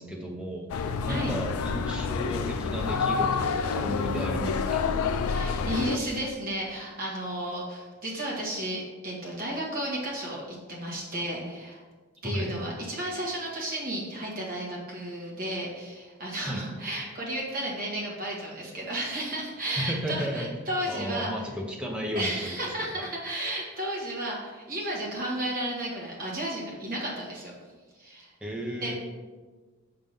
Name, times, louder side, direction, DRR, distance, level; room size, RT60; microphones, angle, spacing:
voice 1, 0.0-5.0 12.2-12.5 16.5-16.7 19.8-20.5 20.9-22.7 22.9-23.0 28.4-29.0, equal, 5° right, -1 dB, 0.7 m, -34 dB
sound 1, 0.7-6.0, left 5 dB, 85° left, 0.4 m, -28 dB
voice 2, 5.3-11.8 12.2-21.5 22.1-27.5 27.9-28.3 28.8-29.0, right 1 dB, 40° right, -3 dB, 1.5 m, -33 dB
5.7 x 3.7 x 5.3 m, 1.4 s
head